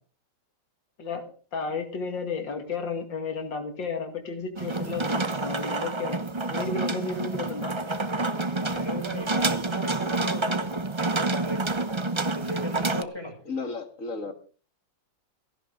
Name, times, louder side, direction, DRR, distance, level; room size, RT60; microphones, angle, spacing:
voice 1, 1.0-7.8, left 4 dB, 90° left, 2.8 m, -33 dB
sound 1, 4.6-13.0, right 2 dB, 25° right, 0.6 m, -28 dB
voice 2, 8.6-10.7 11.3-11.8 12.3-13.4, equal, 15° left, 6.7 m, -36 dB
voice 3, 13.5-14.3, left 4 dB, 45° left, 2.3 m, -33 dB
17.0 x 15.0 x 3.8 m
omnidirectional pair, 1.9 m